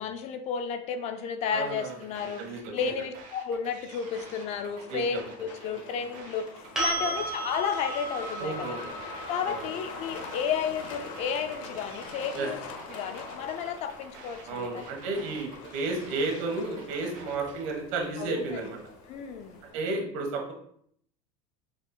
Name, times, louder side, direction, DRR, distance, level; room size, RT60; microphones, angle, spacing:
voice 1, 0.0-2.4 2.7-6.5 6.8-8.8 9.3-12.6 12.9-14.9 18.2-18.6 19.1-19.6, left 6 dB, 45° left, 7 dB, 0.4 m, -32 dB
voice 2, 1.5-2.0 2.4-2.9 4.9-5.2 5.7-5.8 6.9-7.2 8.4-8.9 9.5-9.6 12.3-12.5 14.4-18.8 19.7-20.5, right 3 dB, 80° right, 2 dB, 1.3 m, -33 dB
sound 1, 1.6-17.6, right 4 dB, 50° right, 1.0 m, -50 dB
Truck, 3.9-19.7, left 4 dB, 85° left, 0.7 m, -44 dB
sound 2, 6.8-14.6 17.4-17.5, right 2 dB, 5° right, 1.3 m, -37 dB
5.0 x 4.2 x 2.3 m, 0.66 s
cardioid pair, 155°, 16 cm